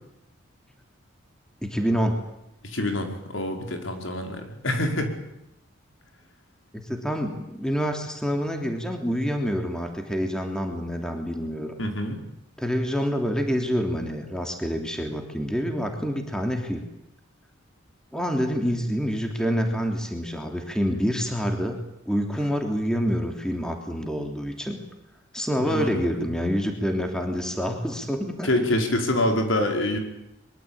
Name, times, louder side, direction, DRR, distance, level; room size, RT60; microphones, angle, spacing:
voice 1, 1.6-2.2 6.7-11.7 12.6-16.8 18.1-21.8 22.1-24.8 25.3-28.5, equal, 5° left, 3 dB, 3.2 m, -27 dB
voice 2, 2.6-5.1 11.8-12.2 25.7-26.0 28.4-30.0, left 1 dB, 75° left, 3 dB, 5.1 m, -26 dB
24.0 x 23.5 x 8.9 m, 0.84 s
head